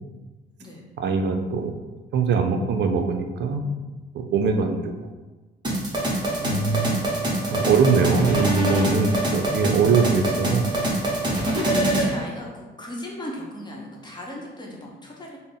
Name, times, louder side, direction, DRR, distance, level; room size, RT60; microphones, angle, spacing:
voice 1, 1.0-1.7 2.1-3.6 4.1-4.9 6.4-7.0 7.5-10.7, right 5 dB, 60° right, 5 dB, 0.5 m, -22 dB
sound 1, 5.6-12.1, right 1 dB, 20° right, 1.0 m, -24 dB
voice 2, 11.4-15.4, left 1 dB, 20° left, -2 dB, 0.9 m, -37 dB
3.5 x 2.0 x 4.0 m, 1.2 s
cardioid pair, 90°, 20 cm